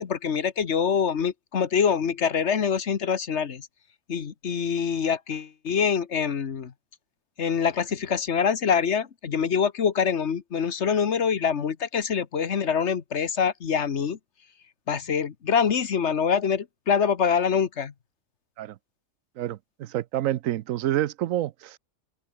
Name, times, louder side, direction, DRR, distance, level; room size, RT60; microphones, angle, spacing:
voice 1, 0.0-3.7 4.1-6.7 7.4-14.2 14.9-17.9, left 7 dB, 60° left, 1.5 m, -25 dB
voice 2, 19.4-21.8, right 13 dB, 90° right, 1.1 m, -28 dB
open air
omnidirectional pair, 1.3 m